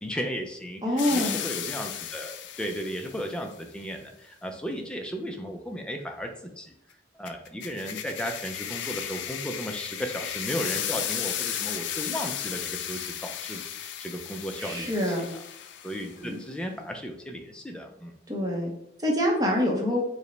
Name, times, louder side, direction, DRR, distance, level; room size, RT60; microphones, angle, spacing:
voice 1, 0.0-6.3 6.6-6.7 7.1-15.4 15.8-18.1, equal, 5° left, 3 dB, 0.3 m, -35 dB
voice 2, 0.8-1.4 14.6-15.3 16.2-16.3 18.3-18.7 19.0-20.0, left 1 dB, 20° right, 0 dB, 0.7 m, -25 dB
sound 1, 1.0-3.3 7.3-16.2, left 10 dB, 80° left, 0.3 m, -34 dB
4.8 x 2.1 x 3.1 m, 0.75 s
head